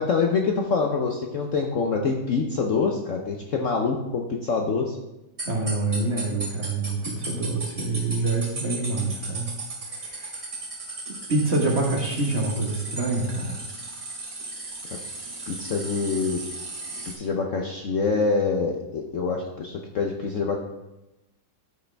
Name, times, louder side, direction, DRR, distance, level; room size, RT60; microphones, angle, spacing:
voice 1, 0.0-5.0 15.5-16.4 17.1-20.6, left 4 dB, 55° left, 1 dB, 0.9 m, -25 dB
voice 2, 5.4-9.5 9.8-10.4 11.3-13.6, right 3 dB, 35° right, 0 dB, 1.6 m, -26 dB
sound 1, 5.4-17.1, right 2 dB, 55° right, 3.1 m, -36 dB
12.5 x 6.4 x 3.4 m, 0.96 s
omnidirectional pair, 2.0 m